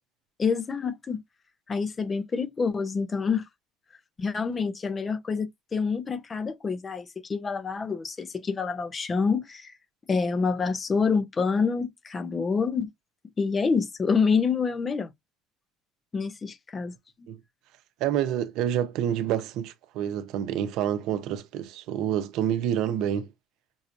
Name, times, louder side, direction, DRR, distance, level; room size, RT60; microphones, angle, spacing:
voice 1, 0.4-1.2 1.7-3.4 4.2-9.7 10.1-12.9 13.4-15.1 16.1-16.9 17.2-17.3, left 5 dB, 25° left, 0.6 m, -27 dB
voice 2, 18.0-23.3, right 10 dB, 65° right, 0.7 m, -28 dB
5.4 x 2.8 x 2.4 m
cardioid pair, 140°, 0 cm